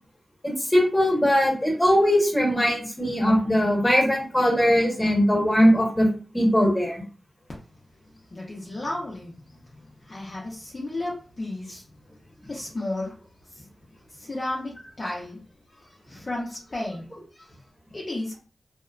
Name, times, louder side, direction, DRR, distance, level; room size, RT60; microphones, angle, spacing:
voice 1, 0.4-6.1 6.3-7.0, equal, 15° left, -2 dB, 1.2 m, -20 dB
voice 2, 8.3-9.6 10.0-11.8 12.5-13.1 13.5-13.7 14.1-15.4 15.7-17.1 17.3-17.5 17.9-18.3, left 2 dB, 45° left, -4 dB, 0.6 m, -33 dB
2.8 x 2.1 x 2.3 m, 0.39 s
cardioid pair, 65°, 0 cm